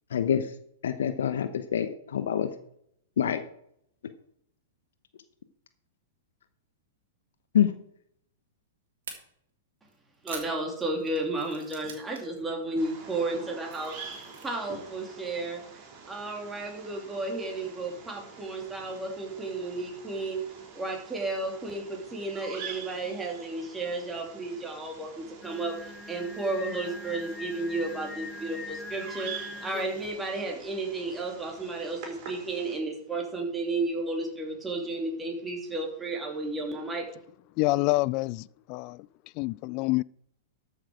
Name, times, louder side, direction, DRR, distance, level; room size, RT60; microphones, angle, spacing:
voice 1, 0.1-0.4 0.8-2.5 3.2-3.4 7.5-7.7, left 9 dB, 70° left, 0.9 m, -26 dB
sound 1, 9.0-9.2 9.9-12.4 12.6-12.9 13.3-14.5, right 6 dB, 70° right, 3.3 m, -44 dB
voice 2, 10.2-14.0 14.4-15.6 16.1-20.4 20.7-37.1, right 2 dB, 15° right, 3.1 m, -33 dB
Bird vocalization bird call bird song, 12.8-32.8, right 5 dB, 50° right, 4.5 m, -46 dB
Singing, 25.4-30.2, left 2 dB, 10° left, 0.8 m, -42 dB
voice 3, 37.6-39.1 39.4-40.0, left 21 dB, 45° left, 0.3 m, -27 dB
13.5 x 6.6 x 5.0 m
hypercardioid pair, 110°, 0 cm